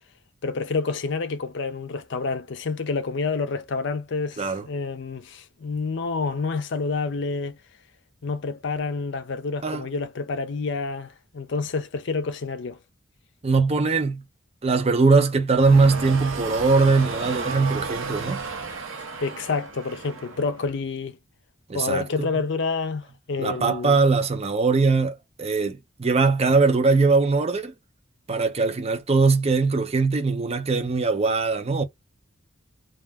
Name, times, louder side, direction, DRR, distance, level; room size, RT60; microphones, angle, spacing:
voice 1, 0.4-7.6 8.2-12.8 19.2-21.2 21.7-24.0, left 4 dB, 60° left, 0.5 m, -28 dB
voice 2, 13.4-14.2 14.6-18.4 21.7-22.3 23.4-27.7 28.3-31.8, right 4 dB, 30° right, 0.5 m, -21 dB
sound 1, 15.5-20.7, right 4 dB, 85° right, 0.8 m, -33 dB
2.3 x 2.1 x 3.4 m
head